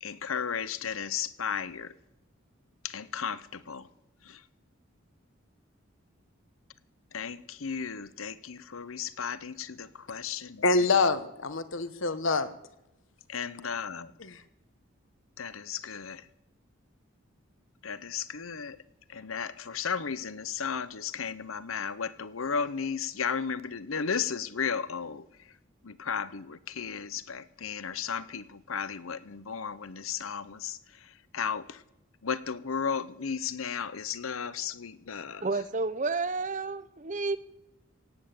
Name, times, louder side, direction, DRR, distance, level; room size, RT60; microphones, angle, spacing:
voice 1, 0.0-1.9 2.8-3.9 4.3-4.4 7.1-10.7 13.3-14.1 15.4-16.2 17.8-18.8 19.1-25.2 25.8-30.8 31.3-31.8 32.2-35.5, left 6 dB, 85° left, 16 dB, 0.8 m, -34 dB
voice 2, 10.6-12.5 14.2-14.4, left 3 dB, 70° left, 12 dB, 1.2 m, -26 dB
voice 3, 35.4-37.4, right 3 dB, 35° right, 15 dB, 0.7 m, -30 dB
17.0 x 8.9 x 8.7 m, 0.89 s
head